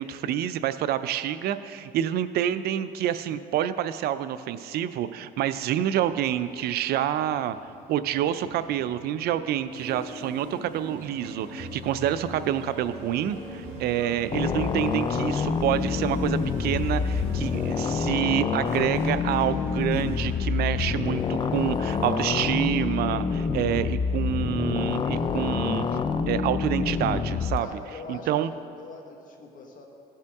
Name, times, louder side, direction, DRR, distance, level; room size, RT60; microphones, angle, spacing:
voice 1, 0.0-7.6 7.9-25.9 26.3-27.7 28.1-28.5, right 11 dB, 70° right, 13 dB, 0.4 m, -27 dB
Truck, 5.9-22.1, right 1 dB, 15° right, 2.3 m, -49 dB
sound 1, 9.7-18.0, left 1 dB, 85° right, 2.5 m, -40 dB
sound 2, 14.3-27.6, left 5 dB, 25° left, 0.4 m, -27 dB
voice 2, 27.6-29.8, left 3 dB, 55° left, 2 dB, 1.4 m, -43 dB
16.0 x 5.6 x 3.5 m, 2.5 s
cardioid pair, 110°, 17 cm